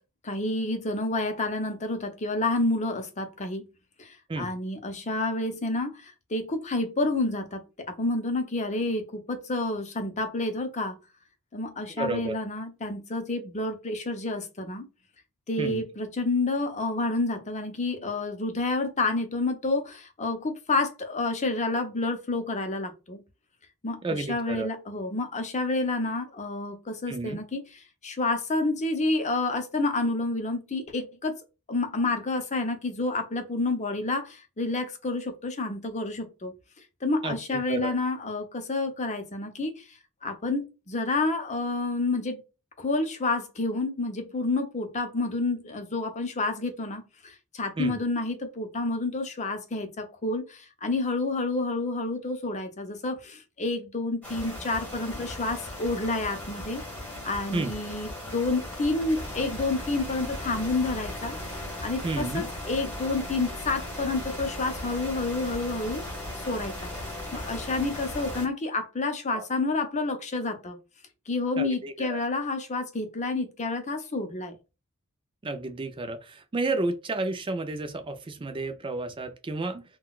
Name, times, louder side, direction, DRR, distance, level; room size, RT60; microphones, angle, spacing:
voice 1, 0.2-3.6 4.0-11.0 11.5-14.8 15.5-23.2 23.8-31.4 31.7-36.5 37.0-39.9 40.2-42.4 42.8-56.8 57.2-61.4 61.8-66.0 66.5-66.9 67.3-70.8 71.3-74.6, left 2 dB, 35° left, 0.6 m, -29 dB
voice 2, 11.9-12.3 15.6-15.8 24.0-24.7 27.1-27.4 37.2-37.9 47.8-48.0 57.5-57.7 62.0-62.5 69.3-69.4 71.6-72.2 75.4-79.8, right 2 dB, 25° right, 0.4 m, -31 dB
Radio Static FM Louder signal, 54.2-68.5, left 1 dB, 5° left, 1.6 m, -37 dB
3.8 x 2.2 x 2.3 m
head